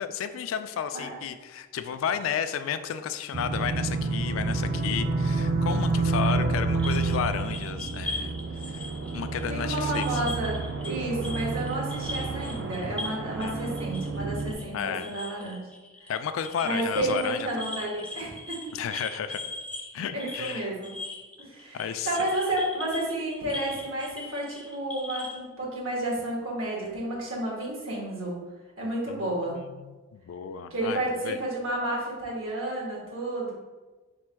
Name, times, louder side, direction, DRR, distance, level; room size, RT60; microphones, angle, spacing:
voice 1, 0.0-8.4 8.7-8.9 9.1-10.0 13.4-13.6 14.7-15.1 16.1-17.5 18.7-19.4 19.9-20.7 21.7-22.1 29.1-29.2 29.5-31.4, left 8 dB, 85° left, 11 dB, 0.3 m, -32 dB
voice 2, 0.9-1.3 6.4-6.5 9.5-15.6 16.0-16.1 16.6-18.7 20.1-20.9 21.4-28.3 28.8-29.6 30.7-33.5, right 1 dB, 85° right, -4 dB, 1.3 m, -31 dB
sound 1, 3.3-14.5, right 3 dB, 55° right, 0.4 m, -29 dB
sound 2, 6.8-11.0 11.2-25.4, left 2 dB, 5° left, 0.4 m, -40 dB
4.4 x 2.2 x 4.4 m, 1.2 s
head